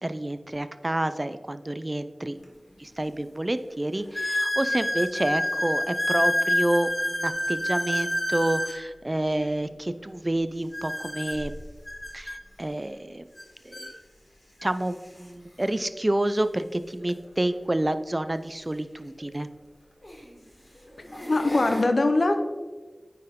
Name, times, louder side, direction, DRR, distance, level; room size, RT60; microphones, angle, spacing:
voice 1, 0.0-2.4 2.8-11.5 12.1-13.3 13.6-13.9 14.6-19.5, right 1 dB, 30° right, 12 dB, 0.4 m, -29 dB
sound 1, 2.4-2.5 3.2-3.3 4.1-8.8 10.7-12.4 13.4-13.5 13.7-13.9 14.7-14.8 17.0-17.1 19.2-19.3 20.0-20.3 20.9-21.8, left 1 dB, 30° left, 1.9 m, -28 dB
voice 2, 21.3-22.4, left 2 dB, 75° left, 7 dB, 0.7 m, -22 dB
9.4 x 4.5 x 3.6 m, 1.3 s
wide cardioid pair, 55°, 0 cm